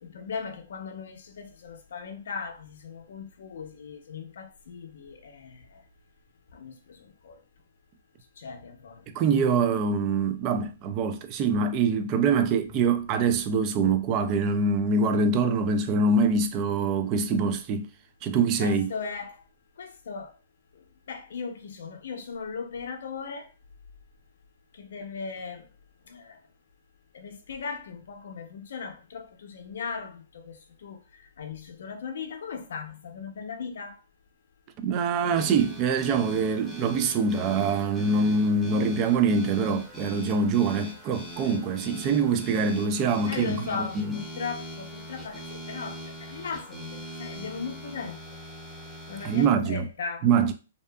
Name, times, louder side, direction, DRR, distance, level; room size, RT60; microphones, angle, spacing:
voice 1, 0.0-5.8 6.5-7.4 8.4-9.0 11.7-12.0 12.7-12.8 18.6-19.4 19.8-20.3 21.1-23.5 24.7-25.7 26.1-26.4 27.1-34.0 43.2-48.4 49.1-50.3, left 5 dB, 70° left, 0.6 m, -38 dB
voice 2, 9.1-17.9 18.2-18.9 34.8-44.2 49.2-49.9 50.2-50.5, right 4 dB, 30° right, 0.4 m, -24 dB
sound 1, 35.4-49.5, right 1 dB, 5° right, 0.7 m, -42 dB
2.7 x 2.3 x 2.2 m
hypercardioid pair, 145°, 0 cm